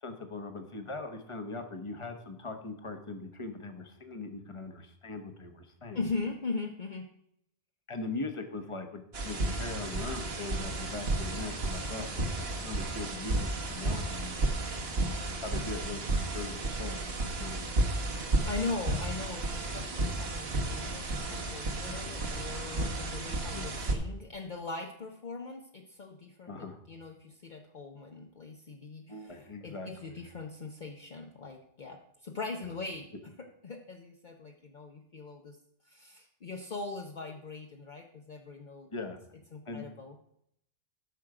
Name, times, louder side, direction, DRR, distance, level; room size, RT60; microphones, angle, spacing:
voice 1, 0.0-6.0 7.9-14.6 15.4-17.6 23.5-23.8 26.5-26.8 29.1-30.2 38.9-39.2 39.6-39.9, left 3 dB, 30° left, 6 dB, 1.2 m, -40 dB
voice 2, 5.9-7.1 18.4-35.6 35.8-38.9 39.5-40.2, left 3 dB, 50° left, 2 dB, 0.9 m, -40 dB
sound 1, 9.1-23.9, right 2 dB, 70° right, 1.5 m, -33 dB
13.0 x 6.3 x 4.9 m, 0.75 s
omnidirectional pair, 1.1 m